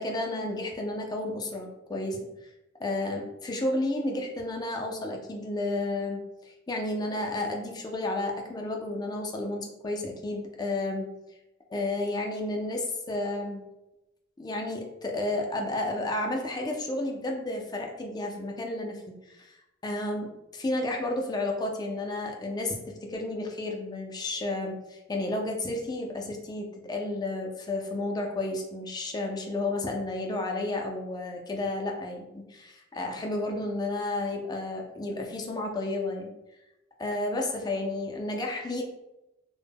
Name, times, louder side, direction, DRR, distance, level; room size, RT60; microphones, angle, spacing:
voice 1, 0.0-2.2 2.8-11.1 11.7-13.6 14.4-19.5 19.8-20.3 20.6-22.8 23.0-36.3 37.0-38.8, left 2 dB, 20° left, 1 dB, 0.3 m, -32 dB
2.1 x 2.0 x 3.3 m, 0.94 s
head